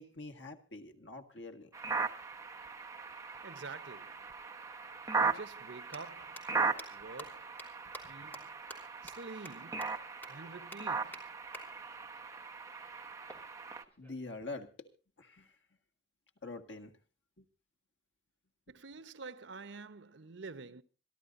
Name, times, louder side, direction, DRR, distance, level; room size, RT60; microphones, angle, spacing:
voice 1, 0.0-2.0 14.0-14.7 15.2-15.5 16.4-16.9 17.4-17.5, left 3 dB, 85° left, 2.0 m, -45 dB
sound 1, 1.7-13.8, right 4 dB, 20° right, 1.1 m, -38 dB
voice 2, 3.4-4.3 5.2-6.5 6.9-7.6 8.1-8.5 9.0-10.0 10.3-11.3 18.7-20.8, right 4 dB, 85° right, 0.9 m, -48 dB
sound 2, 5.9-6.0 6.4-6.5 6.8-6.9 7.2-7.3 7.6-7.7 7.9-8.0 8.3-8.4 8.7-8.8 9.1-9.2 9.5-9.6 9.8-9.9 10.2-10.3 10.7-10.8 11.1-11.2 11.5-11.6 13.3-14.3, equal, 10° left, 3.3 m, -48 dB
26.5 x 12.0 x 2.6 m
head